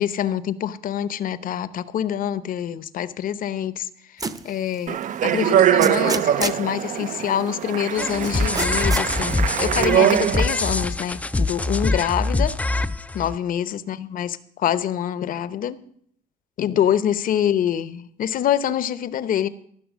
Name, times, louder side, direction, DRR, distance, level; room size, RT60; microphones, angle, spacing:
voice 1, 0.0-3.9 4.4-9.3 9.6-12.6 13.1-15.8 16.6-19.5, left 10 dB, 55° left, 15 dB, 0.8 m, -25 dB
sound 1, 4.2-4.5 5.0-5.1 5.8-6.7 8.2-9.1, right 4 dB, 20° right, 0.8 m, -28 dB
Speech, 4.9-10.7, right 10 dB, 50° right, 0.5 m, -22 dB
sound 2, 8.0-13.4, left 2 dB, 10° left, 0.4 m, -24 dB
15.0 x 5.8 x 7.3 m, 0.65 s
cardioid pair, 110°, 17 cm